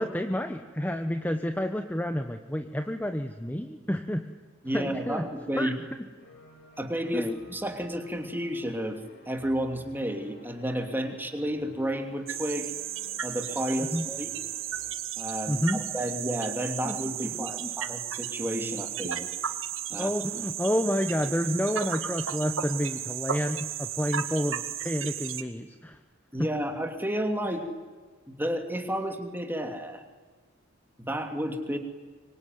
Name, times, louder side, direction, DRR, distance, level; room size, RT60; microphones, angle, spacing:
voice 1, 0.0-4.2 4.7-5.3 5.6-5.7 7.1-7.3 13.9-14.1 15.5-15.8 16.8-17.0 17.4-17.7 19.9-26.0 26.4-26.5 27.4-27.5, equal, 10° left, 7 dB, 1.1 m, -29 dB
voice 2, 4.6-5.7 6.8-12.7 13.2-14.3 15.1-15.6 15.9-19.3 19.9-20.1 26.3-27.7 28.3-30.0 31.0-31.8, equal, 10° right, 5 dB, 2.9 m, -31 dB
sound 1, 6.2-14.9, left 1 dB, 50° left, 6.3 m, -54 dB
sound 2, 12.3-25.4, right 9 dB, 70° right, 2.0 m, -34 dB
25.5 x 24.5 x 9.5 m, 1.4 s
head